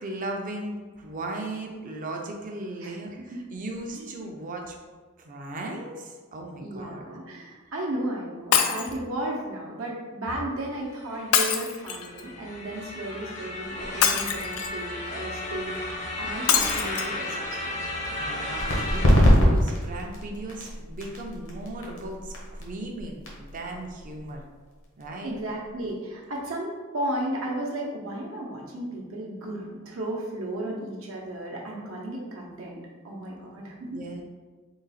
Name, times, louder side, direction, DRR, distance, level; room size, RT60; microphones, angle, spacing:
voice 1, 0.0-4.8 5.2-7.0 18.1-24.4 25.0-25.3 33.9-34.2, right 2 dB, 40° right, 1 dB, 0.5 m, -37 dB
voice 2, 3.3-4.1 6.6-15.9 16.2-17.8 25.2-34.0, right 1 dB, 70° right, -3 dB, 0.8 m, -34 dB
Shatter, 8.5-9.0 11.3-12.2 14.0-14.8 16.5-17.1 17.7-17.8 18.1-18.2, left 7 dB, 80° left, 0.4 m, -24 dB
sound 1, 10.9-19.1, left 2 dB, 35° left, 0.6 m, -34 dB
sound 2, 18.6-25.9, equal, 65° left, 0.9 m, -25 dB
3.9 x 2.4 x 4.0 m, 1.4 s
head